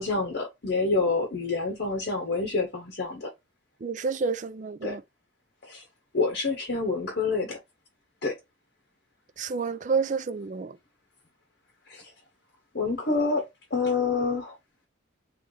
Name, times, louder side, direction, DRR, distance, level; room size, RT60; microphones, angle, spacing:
voice 1, 0.0-3.3 4.8-5.0 5.6-5.8 6.1-7.6 8.2-8.4 11.9-12.1 12.7-13.4 13.7-14.5, left 3 dB, 50° left, 0.8 m, -27 dB
voice 2, 3.8-5.0 9.4-10.7, right 5 dB, 35° right, 0.4 m, -29 dB
3.8 x 3.1 x 3.1 m
head